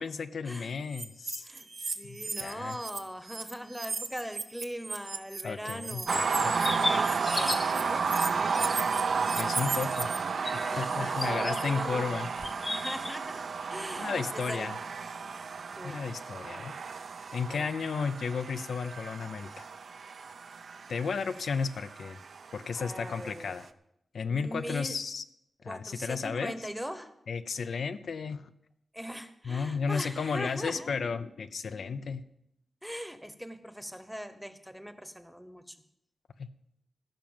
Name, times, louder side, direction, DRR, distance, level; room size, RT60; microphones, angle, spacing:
voice 1, 0.0-1.5 2.0-2.8 5.4-6.0 6.4-6.8 9.4-10.1 10.5-12.3 14.0-14.8 15.8-16.7 17.3-19.7 20.9-22.2 22.5-23.7 24.1-25.2 25.6-26.7 27.3-28.5 29.4-32.2 36.4-36.5, left 5 dB, 70° left, 10 dB, 0.6 m, -33 dB
sound 1, 0.9-3.0 3.2-10.2, right 3 dB, 45° right, 1.1 m, -37 dB
voice 2, 1.4-6.2 6.7-8.7 10.7-12.1 12.6-13.4 13.7-14.7 15.8-16.0 17.5-17.7 22.7-23.6 24.3-25.0 25.7-27.1 28.9-31.0 32.8-35.7, equal, ahead, 10 dB, 1.0 m, -40 dB
sound 2, 6.1-7.8 8.5-11.8 12.1-13.2, left 2 dB, 25° left, 0.8 m, -36 dB
sound 3, 6.1-23.3, right 5 dB, 65° right, 0.6 m, -32 dB
15.5 x 5.9 x 7.3 m, 0.78 s
wide cardioid pair, 110°, 0 cm